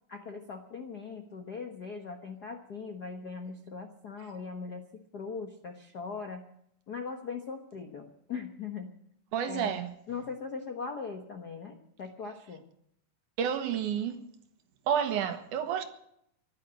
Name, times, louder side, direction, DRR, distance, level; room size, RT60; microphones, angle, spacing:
voice 1, 0.1-4.8 5.1-6.4 6.9-8.9 9.4-9.8 10.1-12.6, left 5 dB, 90° left, 0.8 m, -40 dB
voice 2, 9.3-9.9 13.4-14.2 14.9-15.8, right 8 dB, 70° right, 2.7 m, -30 dB
15.0 x 11.5 x 7.6 m
omnidirectional pair, 3.9 m